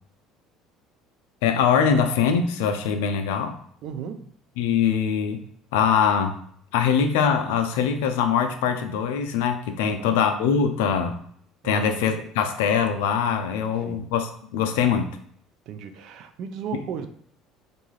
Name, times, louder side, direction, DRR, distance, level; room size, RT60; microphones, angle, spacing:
voice 1, 1.4-3.6 4.6-5.4 5.7-6.4 6.7-11.2 11.6-15.2 16.7-16.8, left 7 dB, 80° left, 7 dB, 0.3 m, -23 dB
voice 2, 3.8-4.3 9.8-10.2 11.6-12.1 13.6-14.1 15.7-17.1, right 7 dB, 65° right, 9 dB, 0.3 m, -35 dB
2.6 x 2.3 x 3.0 m, 0.63 s
supercardioid pair, 80°, 0 cm